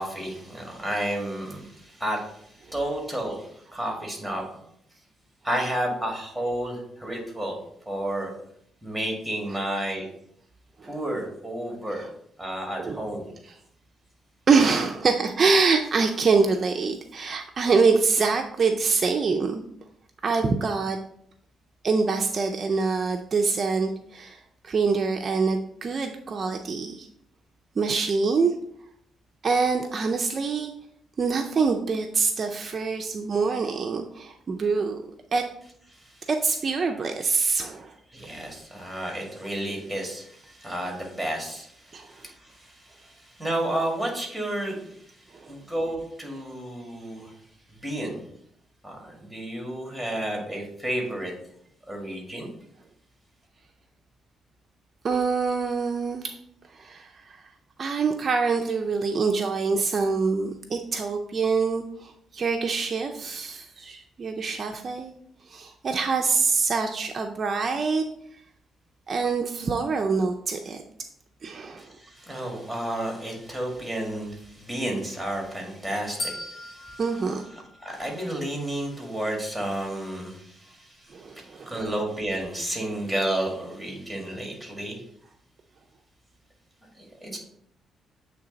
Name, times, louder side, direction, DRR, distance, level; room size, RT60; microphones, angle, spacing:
voice 1, 0.0-4.5 5.4-7.6 7.8-8.3 8.8-10.1 10.8-12.0 12.4-13.3 36.0-36.3 38.1-45.2 45.5-47.3 47.7-48.2 48.8-51.3 51.9-52.5 71.8-77.0 77.8-85.0 87.0-87.4, right 1 dB, 5° left, 0 dB, 1.8 m, -31 dB
voice 2, 14.5-19.6 20.2-21.0 21.8-27.1 27.8-28.5 29.4-30.7 31.2-35.0 35.3-35.4 36.3-37.9 41.9-42.1 45.4-45.5 55.0-56.4 56.7-57.4 57.8-65.1 65.5-68.0 69.1-70.8 71.4-71.9 77.0-77.4 81.1-81.9, right 4 dB, 40° right, 3 dB, 0.4 m, -25 dB
sound 1, 76.2-78.4, left 1 dB, 70° left, 1.8 m, -38 dB
7.9 x 3.2 x 3.9 m, 0.72 s
cardioid pair, 120°, 0 cm